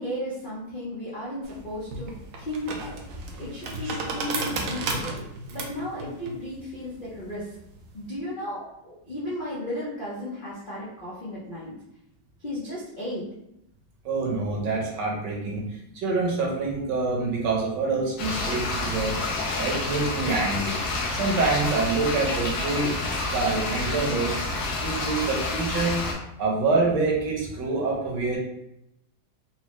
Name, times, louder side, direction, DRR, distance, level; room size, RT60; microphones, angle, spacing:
voice 1, 0.0-2.1 2.4-3.0 3.4-5.2 5.5-7.5 7.9-11.7 12.4-13.3, left 1 dB, 85° left, -8 dB, 0.4 m, -34 dB
sound 1, 1.4-8.1, right 3 dB, 85° right, 0.7 m, -34 dB
voice 2, 14.0-15.6 15.9-19.2 19.5-20.8 21.1-23.0 23.3-24.4 24.8-26.0 26.4-28.4, right 3 dB, 70° right, -2 dB, 1.4 m, -26 dB
sound 2, 18.2-26.1, left 2 dB, 65° left, 1.1 m, -29 dB
4.2 x 2.1 x 3.0 m, 0.83 s
omnidirectional pair, 2.1 m